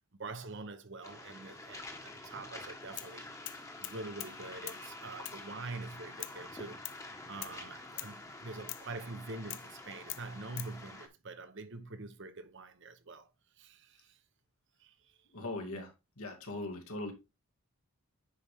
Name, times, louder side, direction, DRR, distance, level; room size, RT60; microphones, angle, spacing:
voice 1, 0.1-3.3 3.8-6.8 7.3-13.3 13.6-14.2 14.8-14.9, right 3 dB, 55° right, 1.0 m, -45 dB
Waves surf, 1.0-11.1, left 2 dB, 15° left, 1.2 m, -48 dB
sound 1, 3.0-3.2 3.5-4.4 4.7-4.8 5.3-5.4 6.2-6.4 6.9-7.0 7.4-7.6 8.0-8.2 8.7-8.9 9.5-9.7 10.1-10.7, left 16 dB, 55° left, 0.5 m, -43 dB
voice 2, 15.3-15.9 16.2-17.1, left 2 dB, 80° left, 2.1 m, -39 dB
9.6 x 5.0 x 3.6 m
head